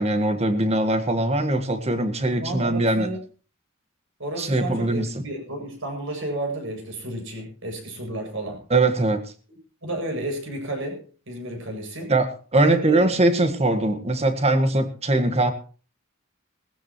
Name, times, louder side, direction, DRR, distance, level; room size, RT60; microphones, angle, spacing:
voice 1, 0.0-3.1 4.4-5.1 8.7-9.2 12.1-15.5, right 2 dB, 30° right, 8 dB, 1.7 m, -21 dB
voice 2, 2.4-3.2 4.2-8.6 9.8-12.1 12.6-13.1, right 1 dB, 65° right, 3 dB, 7.6 m, -32 dB
19.5 x 14.5 x 3.1 m, 0.38 s
head